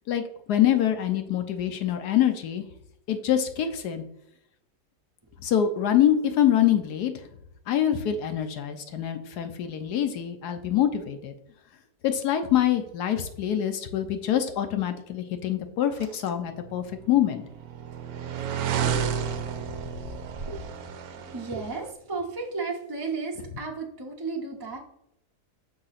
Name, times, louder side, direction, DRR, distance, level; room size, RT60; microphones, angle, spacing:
voice 1, 0.5-2.6 3.1-4.0 5.4-7.1 7.7-11.3 12.0-17.4, left 10 dB, 70° left, 8 dB, 1.2 m, -25 dB
sound 1, 17.0-21.9, right 7 dB, 70° right, 1.0 m, -31 dB
voice 2, 20.4-24.8, right 4 dB, 25° right, -1 dB, 0.5 m, -35 dB
6.4 x 2.9 x 5.7 m, 0.82 s
omnidirectional pair, 1.8 m